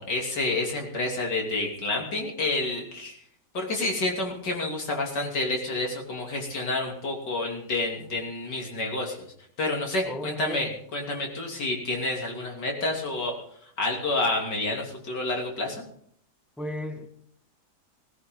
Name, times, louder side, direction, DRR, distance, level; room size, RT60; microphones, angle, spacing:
voice 1, 0.0-3.2 3.5-9.3 9.6-13.4 13.8-15.9, left 2 dB, 80° left, 0 dB, 3.7 m, -29 dB
voice 2, 10.0-10.7 16.6-17.1, left 1 dB, ahead, 5 dB, 1.2 m, -35 dB
18.5 x 16.5 x 3.9 m, 0.66 s
omnidirectional pair, 1.8 m